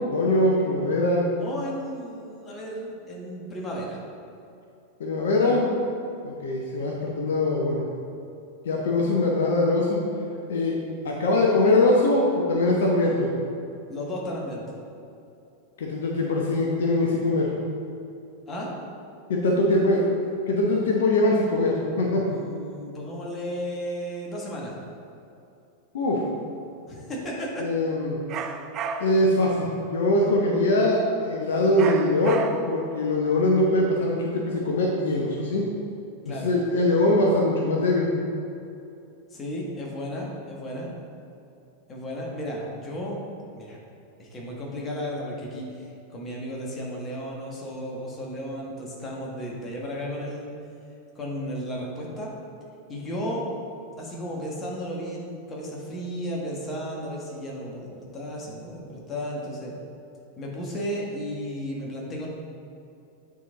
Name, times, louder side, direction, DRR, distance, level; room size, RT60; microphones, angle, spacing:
voice 1, 0.1-1.3 5.0-5.7 6.2-7.8 8.6-10.0 10.5-10.8 11.0-13.3 15.8-17.5 19.3-20.0 20.5-22.2 25.9-26.2 27.6-28.2 29.0-35.7 36.3-38.1, left 2 dB, 60° left, -1 dB, 0.8 m, -22 dB
voice 2, 1.3-4.0 13.9-14.6 18.5-18.7 22.3-24.7 26.9-27.7 28.3-28.5 36.2-36.5 39.3-40.9 41.9-43.2 43.5-43.8 44.2-50.5 51.1-52.3 52.9-53.5 54.0-59.7 60.4-62.3, equal, 20° left, -3 dB, 1.5 m, -34 dB
sound 1, 28.3-29.3 31.8-32.9, right 5 dB, 35° right, 0.4 m, -32 dB
9.2 x 4.1 x 3.9 m, 2.6 s
figure-of-eight pair, 90°, 0 cm